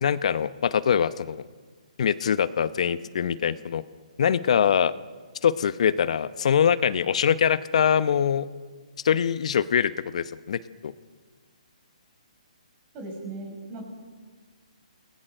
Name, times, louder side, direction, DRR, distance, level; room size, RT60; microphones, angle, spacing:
voice 1, 0.0-1.4 2.0-3.8 4.2-4.9 5.4-8.5 9.0-10.9, left 8 dB, 60° left, 15 dB, 0.9 m, -23 dB
voice 2, 12.9-13.8, right 2 dB, 30° right, 1 dB, 5.5 m, -38 dB
29.0 x 20.0 x 6.6 m, 1.5 s
hypercardioid pair, 140°, 4 cm